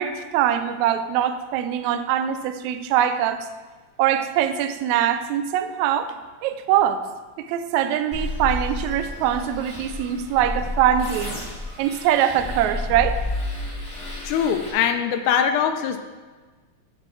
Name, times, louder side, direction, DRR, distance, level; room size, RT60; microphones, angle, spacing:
voice 1, 0.0-3.5 4.0-6.1 6.4-7.0 7.4-11.4 11.8-13.2, right 10 dB, 80° right, 9 dB, 1.7 m, -23 dB
sound 1, 8.1-14.7, left 2 dB, 50° left, 0.4 m, -31 dB
voice 2, 14.2-16.0, left 8 dB, 80° left, 8 dB, 1.9 m, -22 dB
8.0 x 4.4 x 6.9 m, 1.3 s
omnidirectional pair, 3.7 m